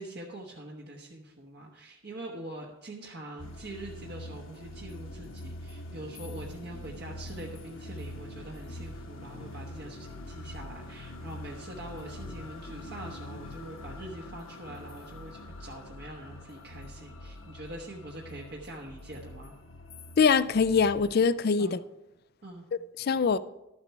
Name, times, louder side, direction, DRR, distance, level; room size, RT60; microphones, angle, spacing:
voice 1, 0.0-19.5 21.6-21.8 22.4-22.6, right 1 dB, 50° right, 1.1 m, -44 dB
sound 1, 3.4-21.1, left 1 dB, 70° left, 1.3 m, -44 dB
voice 2, 20.2-21.8 23.0-23.4, left 5 dB, 50° left, 0.4 m, -23 dB
12.5 x 7.5 x 4.7 m
head